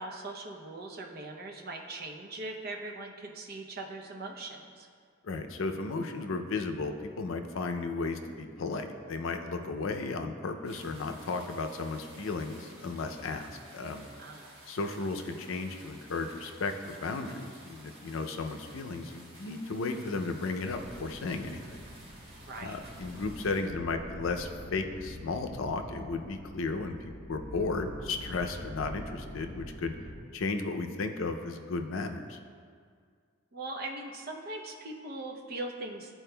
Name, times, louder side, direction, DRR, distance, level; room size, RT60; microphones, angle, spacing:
voice 1, 0.0-4.9 14.2-14.6 22.5-22.8 33.5-36.1, right 2 dB, 50° right, 2 dB, 0.6 m, -40 dB
voice 2, 5.2-14.1 14.7-21.8 22.6-30.0 30.3-32.4, left 3 dB, 85° left, 6 dB, 0.5 m, -34 dB
sound 1, 10.7-23.6, right 1 dB, 30° right, 1.4 m, -53 dB
sound 2, 20.6-30.2, equal, 70° right, 1.3 m, -45 dB
11.0 x 4.4 x 2.2 m, 2.1 s
head